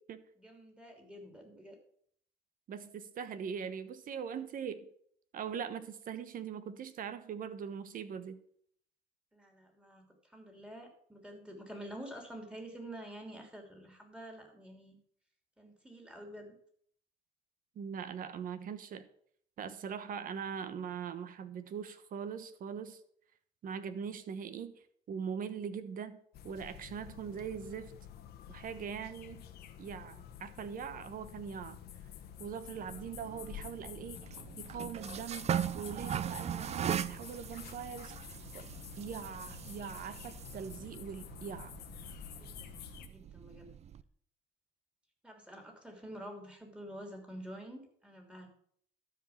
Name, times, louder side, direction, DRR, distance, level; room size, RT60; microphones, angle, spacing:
voice 1, 0.4-1.8 9.3-15.0 15.6-16.6 42.3-42.7 43.1-43.7 45.2-48.5, right 1 dB, 5° right, 2 dB, 3.1 m, -48 dB
voice 2, 2.7-4.9 5.3-8.4 17.7-19.1 19.6-23.0 23.6-26.2 26.4-27.9 28.5-29.4 29.8-31.8 32.4-34.3 34.6-35.5 35.7-38.7 39.0-41.8, right 7 dB, 55° right, 12 dB, 1.1 m, -41 dB
sound 1, 26.3-43.1, left 10 dB, 70° left, 1.3 m, -50 dB
sound 2, 32.8-44.0, right 9 dB, 40° right, 0.5 m, -40 dB
12.5 x 5.1 x 7.2 m, 0.64 s
cardioid pair, 110°, 17 cm